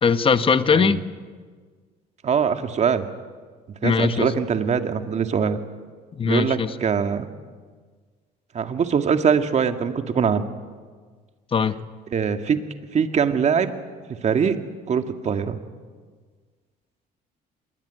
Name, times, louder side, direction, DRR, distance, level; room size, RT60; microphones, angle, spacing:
voice 1, 0.0-1.0 3.8-4.3 6.1-6.7 11.5-11.8, left 5 dB, 30° left, 11 dB, 1.3 m, -20 dB
voice 2, 2.2-3.1 3.8-5.6 6.2-7.3 8.5-10.5 12.1-12.6 12.9-13.7 14.2-14.6 14.9-15.6, right 7 dB, 40° right, 7 dB, 2.1 m, -22 dB
26.5 x 21.5 x 9.4 m, 1.5 s
cardioid pair, 110°, 17 cm